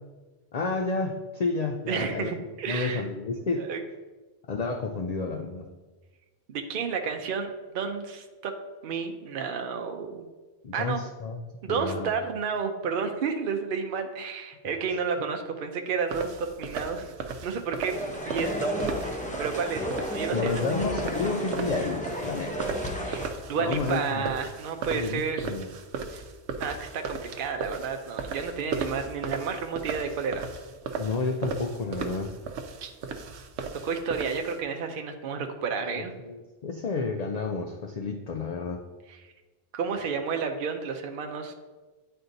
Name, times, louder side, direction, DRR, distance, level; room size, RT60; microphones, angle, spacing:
voice 1, 0.5-3.7 4.5-5.7 10.6-11.4 11.7-12.1 14.6-14.7 20.3-22.7 23.6-24.3 24.9-25.7 31.0-32.3 35.7-38.8, left 3 dB, 65° left, 3 dB, 0.4 m, -31 dB
voice 2, 1.9-3.0 3.6-3.8 6.5-8.5 8.8-10.3 10.7-11.0 11.6-17.1 17.4-18.7 19.0-20.6 23.0-25.5 26.6-30.5 32.8-32.9 33.8-36.1 39.1-39.2 39.7-41.5, right 5 dB, 60° right, 5 dB, 0.7 m, -31 dB
sound 1, 16.1-34.6, right 4 dB, 75° right, 0.9 m, -36 dB
sound 2, 17.9-23.3, equal, 10° left, 0.5 m, -32 dB
9.3 x 4.3 x 2.6 m, 1.3 s
omnidirectional pair, 1.2 m